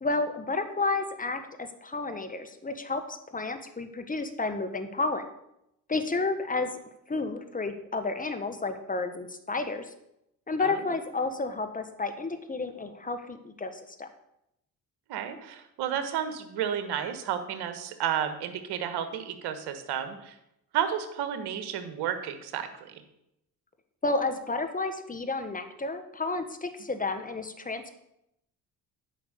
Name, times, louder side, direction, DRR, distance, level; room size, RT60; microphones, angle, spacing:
voice 1, 0.0-5.2 5.9-6.7 7.1-9.8 10.5-14.1 24.0-27.9, left 3 dB, 20° left, 8 dB, 1.4 m, -31 dB
voice 2, 15.1-20.4 20.7-23.0, right 9 dB, 65° right, 9 dB, 1.5 m, -32 dB
9.2 x 5.6 x 6.8 m, 0.82 s
hypercardioid pair, 55°, 42 cm